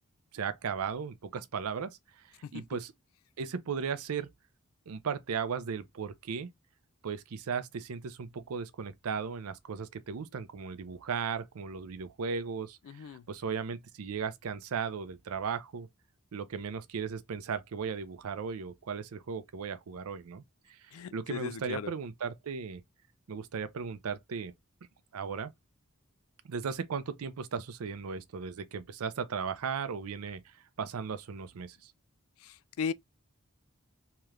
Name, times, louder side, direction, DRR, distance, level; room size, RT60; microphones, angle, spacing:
voice 1, 0.3-2.0 2.5-2.9 3.4-4.3 4.9-6.5 7.0-15.9 16.3-20.4 20.7-20.8 21.1-22.8 23.3-24.5 25.1-25.5 26.4-30.4 30.8-31.9, right 6 dB, 85° right, 0.5 m, -36 dB
voice 2, 12.9-13.2 20.9-21.9 32.4-32.9, left 6 dB, 75° left, 0.3 m, -37 dB
3.2 x 2.8 x 2.3 m
head